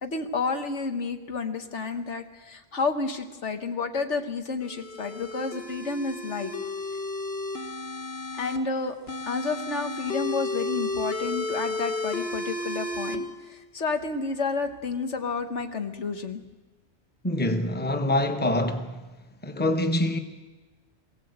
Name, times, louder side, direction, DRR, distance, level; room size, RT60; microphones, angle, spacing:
voice 1, 0.0-6.5 8.3-8.9 9.2-16.4, left 4 dB, 80° left, 1.8 m, -30 dB
sound 1, 4.6-8.6 9.1-13.2, left 2 dB, 60° left, 1.8 m, -33 dB
voice 2, 17.2-19.1 19.4-20.2, left 1 dB, 10° left, 1.0 m, -25 dB
22.5 x 16.5 x 8.1 m
omnidirectional pair, 1.2 m